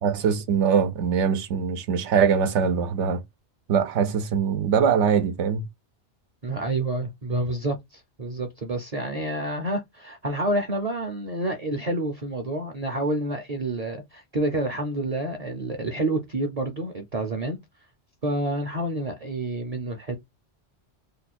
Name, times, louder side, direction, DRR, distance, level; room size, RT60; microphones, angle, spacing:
voice 1, 0.0-3.2 3.7-5.6, right 7 dB, 85° right, 1.0 m, -22 dB
voice 2, 6.4-17.6 18.2-20.2, right 1 dB, 40° right, 0.6 m, -28 dB
3.1 x 2.2 x 4.1 m
omnidirectional pair, 1.2 m